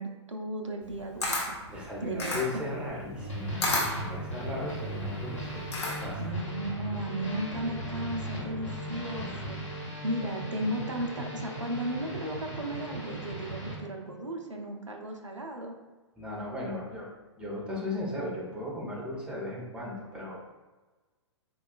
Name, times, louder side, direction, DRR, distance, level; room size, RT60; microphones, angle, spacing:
voice 1, 0.0-1.6 2.0-2.5 6.2-15.8, right 1 dB, 90° right, 2 dB, 0.5 m, -35 dB
Camera, 0.8-6.3, left 2 dB, 65° left, 0.9 m, -33 dB
voice 2, 1.7-6.2 16.2-17.1 17.4-20.5, left 1 dB, 5° right, -3 dB, 0.5 m, -37 dB
sound 1, 3.2-13.8, right 1 dB, 85° left, 1.1 m, -37 dB
4.0 x 2.3 x 2.3 m, 1.3 s
figure-of-eight pair, 115°, 15 cm